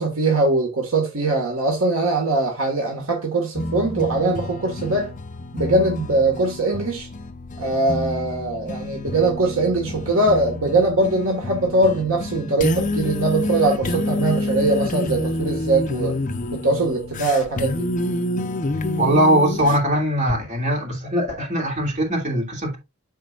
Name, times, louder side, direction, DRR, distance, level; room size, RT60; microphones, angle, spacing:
voice 1, 0.0-5.1 5.5-7.1 7.6-16.2 16.5-17.9, right 2 dB, 65° right, 1.7 m, -21 dB
sound 1, 3.6-19.8, left 1 dB, 35° left, 0.7 m, -28 dB
voice 2, 19.0-22.8, right 1 dB, 35° right, 3.1 m, -21 dB
13.0 x 4.3 x 2.4 m
head